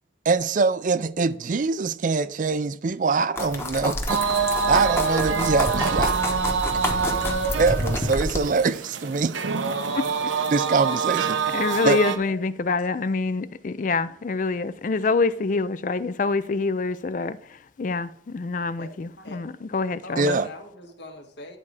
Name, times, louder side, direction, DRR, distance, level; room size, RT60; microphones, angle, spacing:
voice 1, 0.3-4.2 4.7-6.2 7.6-9.4 10.5-11.4 11.8-12.0 20.2-20.5, right 4 dB, 45° right, 0.4 m, -23 dB
sound 1, 3.4-8.4, left 1 dB, 15° left, 1.0 m, -28 dB
sound 2, 4.1-12.2, right 5 dB, 90° right, 0.8 m, -26 dB
voice 2, 9.9-10.3 11.5-20.4, left 4 dB, 45° left, 0.4 m, -26 dB
voice 3, 20.0-21.6, left 2 dB, 70° left, 1.6 m, -42 dB
11.0 x 4.2 x 4.8 m
head